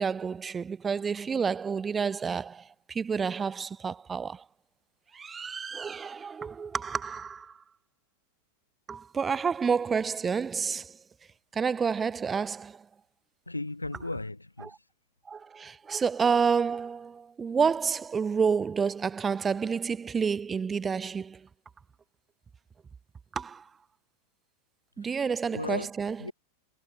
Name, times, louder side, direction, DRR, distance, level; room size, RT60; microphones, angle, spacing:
voice 1, 0.0-4.4 5.1-7.6 8.9-11.0 11.5-12.9 15.3-21.5 23.3-23.7 25.0-26.2, right 6 dB, 15° right, 0.3 m, -29 dB
voice 2, 13.5-14.8 25.0-25.2 25.5-26.3, left 2 dB, 85° left, 0.5 m, -36 dB
figure-of-eight pair, 90°, 0 cm